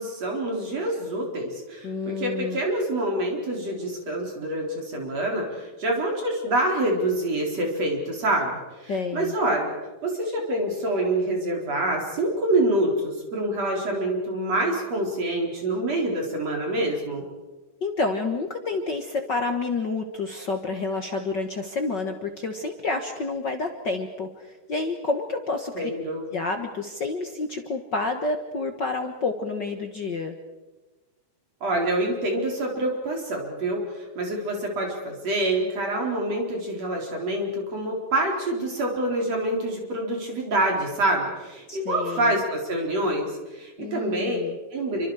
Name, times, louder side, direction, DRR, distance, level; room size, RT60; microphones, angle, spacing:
voice 1, 0.0-9.8 10.0-17.3 25.8-26.3 31.6-44.4 44.7-45.1, right 1 dB, 45° right, 0 dB, 5.3 m, -26 dB
voice 2, 1.8-2.6 8.9-9.3 17.8-25.9 26.3-30.3 41.7-42.3 43.8-44.6, left 3 dB, 60° left, 5 dB, 1.1 m, -29 dB
28.5 x 25.0 x 5.0 m, 1.1 s
omnidirectional pair, 4.1 m